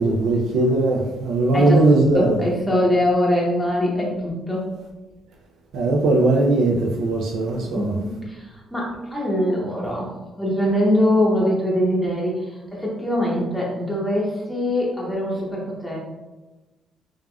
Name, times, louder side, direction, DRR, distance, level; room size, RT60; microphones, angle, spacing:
voice 1, 0.0-2.4 5.7-8.0, right 2 dB, 85° right, -1 dB, 0.3 m, -19 dB
voice 2, 1.5-4.7 7.6-10.1 10.4-16.0, left 1 dB, ahead, -5 dB, 0.8 m, -23 dB
3.3 x 2.3 x 2.2 m, 1.1 s
cardioid pair, 90°, 0 cm